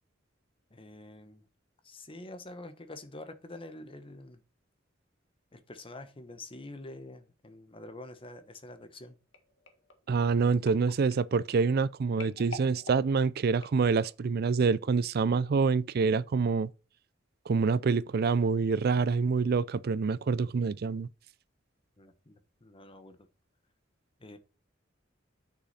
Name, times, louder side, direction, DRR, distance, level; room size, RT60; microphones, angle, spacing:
voice 1, 0.7-1.4 1.8-4.4 5.5-9.2 22.0-23.2 24.2-24.4, left 2 dB, 30° left, 1.1 m, -46 dB
sound 1, 9.3-14.4 15.0-15.2 15.5-15.6, left 3 dB, 75° left, 1.7 m, -49 dB
voice 2, 10.1-16.7 17.5-21.1, right 5 dB, 55° right, 0.4 m, -26 dB
8.1 x 6.6 x 4.1 m
head